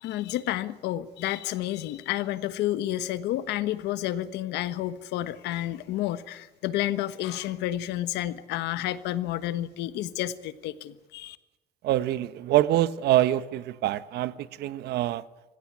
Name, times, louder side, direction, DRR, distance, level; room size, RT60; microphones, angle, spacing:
voice 1, 0.0-11.4, left 14 dB, 85° left, 1.4 m, -30 dB
voice 2, 11.8-15.2, right 14 dB, 75° right, 1.2 m, -25 dB
25.5 x 15.5 x 9.9 m
cardioid pair, 110°, 17 cm